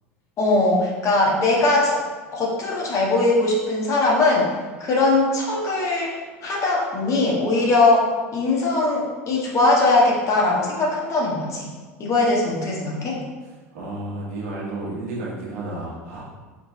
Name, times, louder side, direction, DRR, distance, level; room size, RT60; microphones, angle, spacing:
voice 1, 0.4-2.0 2.3-4.5 4.8-8.0 8.3-11.7 12.0-13.2, left 2 dB, 40° left, -3 dB, 1.4 m, -20 dB
voice 2, 13.7-16.2, right 2 dB, 65° right, -5 dB, 1.5 m, -31 dB
5.0 x 3.3 x 3.1 m, 1.4 s
hypercardioid pair, 75°, 8 cm